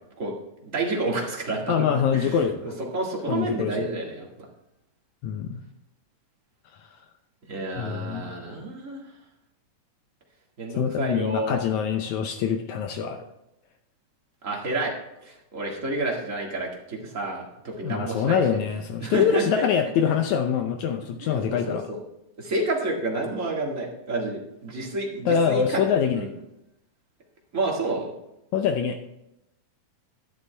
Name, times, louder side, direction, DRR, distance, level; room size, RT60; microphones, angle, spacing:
voice 1, 0.6-1.7 2.1-2.4 2.6-4.3 7.5-9.0 10.6-11.6 14.4-14.9 15.2-18.6 19.0-20.1 21.2-22.0 22.4-25.8 26.1-26.3 27.5-28.1, right 2 dB, 30° right, -1 dB, 1.7 m, -30 dB
voice 2, 1.7-2.7 3.3-3.8 5.2-5.6 7.8-8.3 10.8-13.2 17.8-21.9 25.3-26.2 28.5-29.0, left 7 dB, 75° left, 6 dB, 1.9 m, -24 dB
11.0 x 11.0 x 3.3 m, 0.87 s
omnidirectional pair, 3.7 m